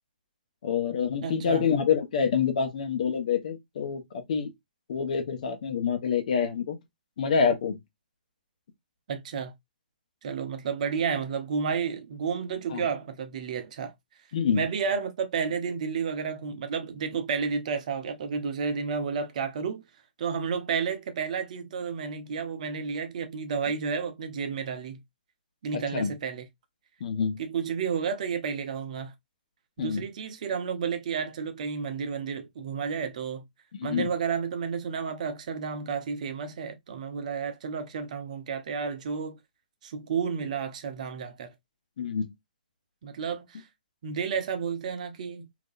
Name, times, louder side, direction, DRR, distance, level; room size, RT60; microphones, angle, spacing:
voice 1, 0.6-4.0 4.3-4.5 4.9-6.8 7.2-7.8 12.7-12.8 14.3-14.6 25.9-26.1 27.0-27.4 29.8-30.0 33.7-34.1 42.0-42.3, left 6 dB, 55° left, 0.9 m, -26 dB
voice 2, 1.2-1.7 9.1-9.5 10.2-13.9 14.5-19.8 20.2-25.0 25.6-26.4 27.4-29.1 29.8-33.4 33.8-39.4 39.8-41.5 43.0-43.6 44.0-45.5, right 6 dB, 50° right, 0.8 m, -31 dB
3.6 x 2.9 x 2.4 m
figure-of-eight pair, 125°, 5 cm